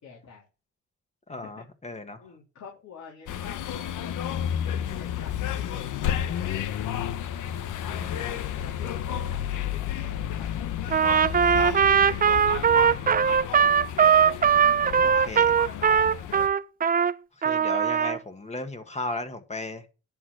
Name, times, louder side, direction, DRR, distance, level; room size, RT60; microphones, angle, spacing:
voice 1, 0.0-0.5 1.3-1.6 2.2-4.5 5.0-6.9 7.9-9.4 9.7-10.7 11.2-11.6 12.6-13.0 15.6-16.3, left 6 dB, 65° left, 3.3 m, -48 dB
voice 2, 1.3-2.2 7.8-8.3 15.0-15.6 17.4-19.8, left 2 dB, 20° left, 1.6 m, -36 dB
sound 1, 3.3-16.5, left 10 dB, 80° left, 1.0 m, -31 dB
Trumpet, 10.9-17.1 17.4-18.2, right 7 dB, 30° right, 0.5 m, -20 dB
11.0 x 4.4 x 6.3 m
cardioid pair, 90°, 30 cm